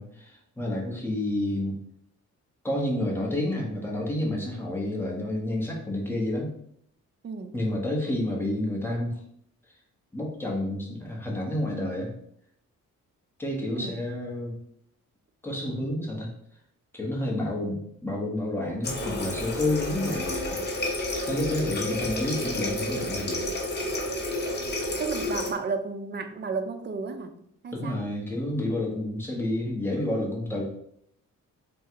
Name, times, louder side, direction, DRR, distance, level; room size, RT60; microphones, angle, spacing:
voice 1, 0.0-1.7 2.6-6.5 7.5-9.2 10.1-12.1 13.4-14.6 15.4-16.3 16.9-20.6 21.3-23.5 27.7-30.6, left 1 dB, 5° left, -3 dB, 1.0 m, -29 dB
voice 2, 7.2-7.5 13.8-14.0 25.0-27.4 27.6-28.0, right 4 dB, 35° right, 8 dB, 0.4 m, -32 dB
Water tap faucet, 18.8-25.5, left 1 dB, 30° left, 0.9 m, -30 dB
3.7 x 2.4 x 4.4 m, 0.70 s
wide cardioid pair, 140°, 32 cm